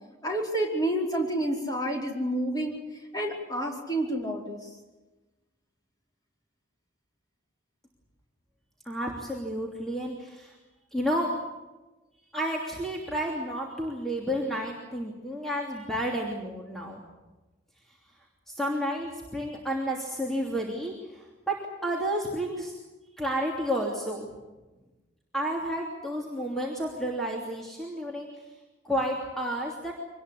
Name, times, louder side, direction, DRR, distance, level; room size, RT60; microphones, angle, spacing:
voice 1, 0.2-2.8 3.1-4.7, right 1 dB, 20° left, -1 dB, 4.8 m, -29 dB
voice 2, 8.8-10.5 10.9-11.3 12.3-17.0 18.5-21.5 21.8-22.7 23.2-24.3 25.3-28.3 28.8-29.9, equal, ahead, -2 dB, 3.0 m, -31 dB
25.0 x 20.0 x 8.5 m, 1.1 s
head